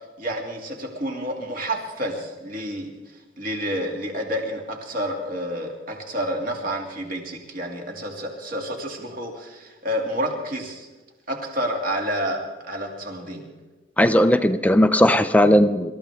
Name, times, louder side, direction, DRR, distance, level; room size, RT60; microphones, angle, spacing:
voice 1, 0.2-10.9 11.3-13.4, equal, 45° right, 1 dB, 2.5 m, -29 dB
voice 2, 14.0-15.9, equal, 5° left, 9 dB, 0.5 m, -17 dB
26.0 x 14.0 x 3.6 m, 1.2 s
head